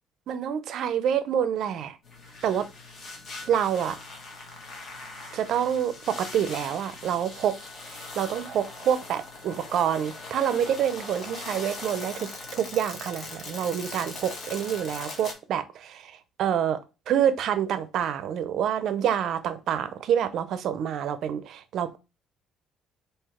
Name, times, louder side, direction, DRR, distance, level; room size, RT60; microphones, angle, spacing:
voice 1, 0.3-2.0 2.4-2.7 3.5-4.0 5.3-7.5 7.9-16.8 17.1-22.0, right 9 dB, 55° right, 0.5 m, -27 dB
sound 1, 2.0-15.3, left 3 dB, 45° left, 1.2 m, -41 dB
3.8 x 2.7 x 4.2 m
cardioid pair, 165°, 0 cm